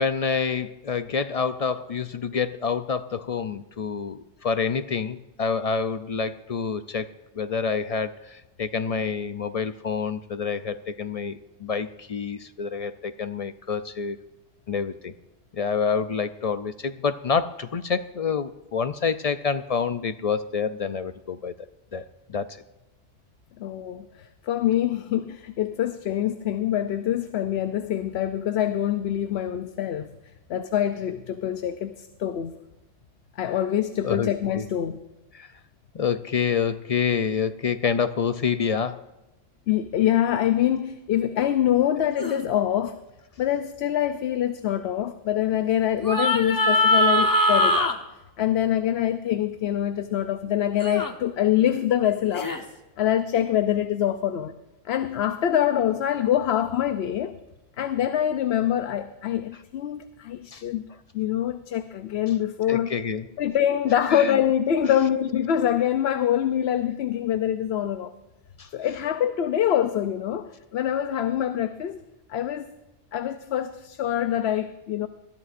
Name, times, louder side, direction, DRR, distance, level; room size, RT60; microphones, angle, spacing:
voice 1, 0.0-14.2 14.7-15.1 15.5-21.5 21.9-22.6 34.0-34.7 35.3-35.5 35.9-39.1 60.5-60.6 62.7-63.3 64.1-64.3 68.6-68.7, left 6 dB, 50° left, 11 dB, 0.5 m, -27 dB
voice 2, 23.6-30.1 30.5-32.6 33.4-35.0 39.7-42.9 43.4-47.9 48.4-52.5 53.0-54.5 54.8-57.4 57.8-60.8 61.1-62.9 63.4-68.1 68.7-72.0 72.3-72.7 73.1-75.1, left 10 dB, 90° left, 9 dB, 0.9 m, -25 dB
sound 1, 42.2-42.4 46.0-47.9 50.8-51.1 52.3-52.6, left 1 dB, 20° left, 0.9 m, -21 dB
20.5 x 14.0 x 2.5 m, 1.0 s
omnidirectional pair, 1.0 m